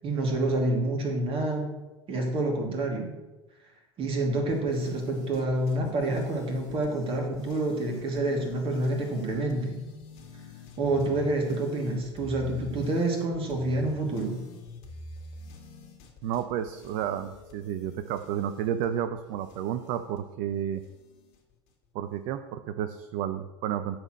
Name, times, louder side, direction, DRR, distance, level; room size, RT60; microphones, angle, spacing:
voice 1, 0.0-1.7 2.1-3.2 4.0-9.8 10.8-14.4, right 2 dB, 35° right, 1 dB, 2.7 m, -28 dB
sound 1, 4.5-21.7, left 1 dB, 60° left, 2.3 m, -47 dB
voice 2, 16.2-20.8 21.9-24.0, right 10 dB, 50° right, 9 dB, 0.6 m, -31 dB
10.5 x 4.4 x 6.4 m, 1.1 s
figure-of-eight pair, 75°, 15 cm